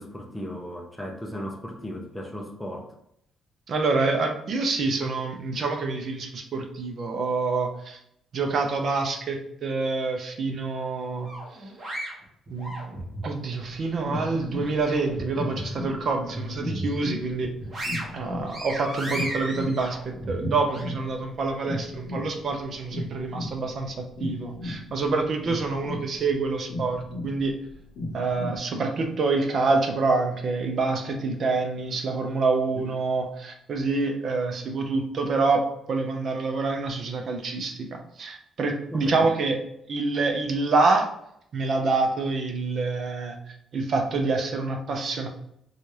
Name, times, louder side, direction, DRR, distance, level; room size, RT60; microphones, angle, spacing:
voice 1, 0.0-2.9 32.8-32.9 38.9-39.3, equal, 5° left, 1 dB, 0.5 m, -36 dB
voice 2, 3.7-8.0 8.3-11.3 12.5-12.7 13.2-17.5 18.1-27.6 28.1-39.6 39.9-41.1 41.5-43.4 43.7-45.3, right 3 dB, 45° right, 4 dB, 0.6 m, -26 dB
sound 1, 11.3-13.3 13.7-15.2 15.6-15.7 16.2-17.0 17.4-20.8, right 1 dB, 30° right, 1.1 m, -35 dB
sound 2, 13.6-28.6, left 2 dB, 65° left, 0.7 m, -36 dB
4.0 x 2.3 x 3.2 m, 0.74 s
cardioid pair, 140°, 0 cm